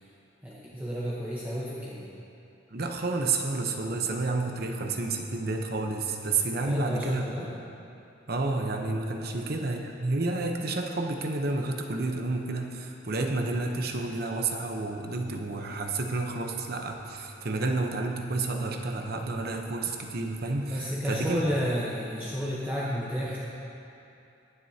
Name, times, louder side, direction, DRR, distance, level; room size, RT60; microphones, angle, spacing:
voice 1, 0.4-2.1 6.6-7.5 9.2-9.5 20.7-23.4, equal, 10° right, -7 dB, 1.0 m, -32 dB
voice 2, 2.7-7.3 8.3-21.4, right 3 dB, 55° right, 3 dB, 0.9 m, -30 dB
22.0 x 7.7 x 2.9 m, 2.8 s
head